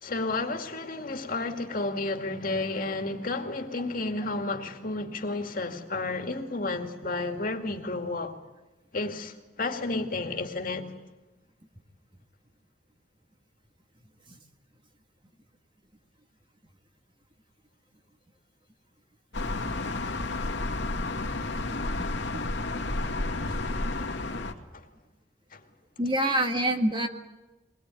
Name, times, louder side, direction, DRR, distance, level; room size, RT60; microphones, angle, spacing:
voice 1, 0.0-8.3 8.9-10.9 23.9-24.2 24.7-24.8 25.5-25.6, left 2 dB, 50° left, 2.3 m, -32 dB
sound 1, 19.3-24.5, left 2 dB, 85° left, 2.3 m, -31 dB
voice 2, 26.0-27.1, right 1 dB, 30° right, 1.9 m, -26 dB
23.0 x 20.5 x 9.3 m
head